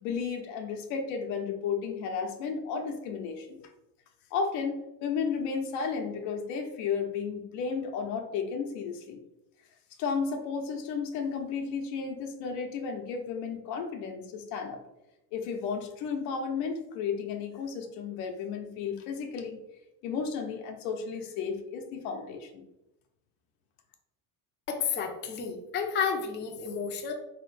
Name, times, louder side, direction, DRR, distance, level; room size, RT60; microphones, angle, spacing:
voice 1, 0.0-3.6 4.3-9.2 10.0-14.8 15.3-19.6 20.0-22.6, left 5 dB, 85° left, 3 dB, 0.9 m, -33 dB
voice 2, 24.7-27.1, left 6 dB, 25° left, 3 dB, 0.5 m, -31 dB
3.9 x 3.1 x 3.2 m, 0.90 s
cardioid pair, 125°, 45 cm